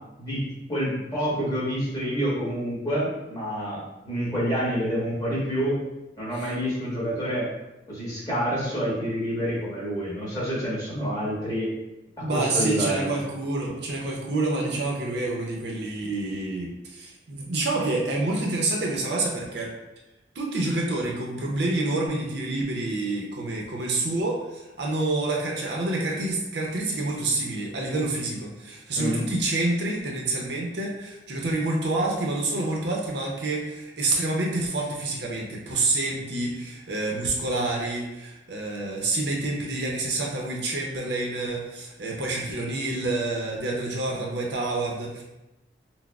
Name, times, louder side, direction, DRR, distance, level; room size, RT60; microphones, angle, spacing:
voice 1, 0.7-3.8 4.0-5.8 6.2-7.5 7.9-11.7 12.2-13.1 29.0-29.2, equal, 20° left, -9 dB, 1.2 m, -27 dB
voice 2, 12.2-19.7 20.3-45.2, right 2 dB, 65° right, -1 dB, 0.6 m, -28 dB
5.9 x 2.0 x 2.3 m, 0.97 s
head